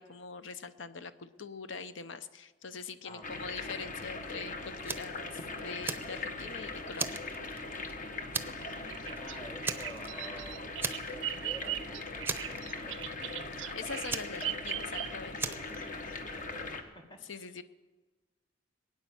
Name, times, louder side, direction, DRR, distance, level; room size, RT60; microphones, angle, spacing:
voice 1, 0.0-7.2 13.7-15.6 17.2-17.6, left 5 dB, 80° left, 12 dB, 0.8 m, -43 dB
voice 2, 3.0-3.4 8.3-13.6 15.4-17.6, right 1 dB, 25° left, 4 dB, 1.9 m, -51 dB
sound 1, 3.2-16.8, left 3 dB, 45° left, 1.3 m, -40 dB
Fire, 4.9-5.2 5.6-6.5 7.0-7.9 8.3-8.7 9.0-9.2 9.6-10.4 10.8-11.4 11.6-11.8 12.2-13.0 14.1-14.9 15.4-15.8, right 4 dB, 10° right, 0.7 m, -36 dB
Bird vocalization bird call bird song, 8.9-15.5, right 14 dB, 75° right, 0.4 m, -39 dB
20.5 x 9.4 x 7.1 m, 1.3 s
head